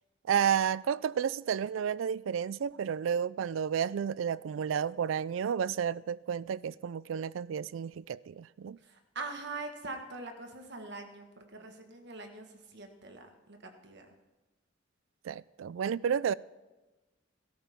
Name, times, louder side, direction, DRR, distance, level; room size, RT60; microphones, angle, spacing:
voice 1, 0.3-8.8 15.2-16.3, right 8 dB, 80° right, 0.3 m, -31 dB
voice 2, 8.8-14.1, right 3 dB, 60° right, 1.5 m, -43 dB
17.0 x 13.0 x 3.6 m
head